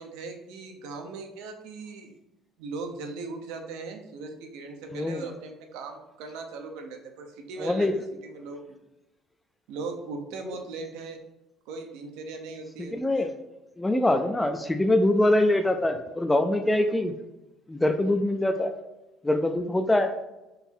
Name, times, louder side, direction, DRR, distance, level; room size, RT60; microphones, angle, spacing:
voice 1, 0.0-2.2 2.6-7.9 8.2-8.8 9.7-11.2 11.7-13.3, right 3 dB, 90° right, 4 dB, 0.7 m, -39 dB
voice 2, 4.9-5.2 7.6-7.9 10.5-10.6 12.8-13.3 13.8-17.1 17.7-18.7 19.2-20.1, left 1 dB, 10° left, 7 dB, 0.3 m, -24 dB
3.9 x 2.9 x 4.4 m, 0.99 s
cardioid pair, 125°, 0 cm